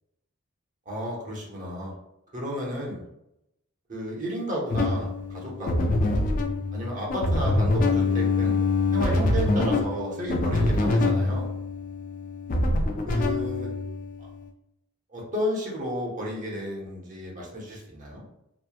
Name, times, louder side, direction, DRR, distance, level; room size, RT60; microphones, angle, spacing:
voice 1, 0.9-1.9 2.3-3.1 3.9-5.9 6.7-8.6 8.9-11.5 13.1-13.7 14.2-14.3 15.1-18.2, equal, 40° right, -3 dB, 0.7 m, -32 dB
sound 1, 4.7-14.2, left 2 dB, 40° left, 0.3 m, -25 dB
2.9 x 2.1 x 2.3 m, 0.84 s
head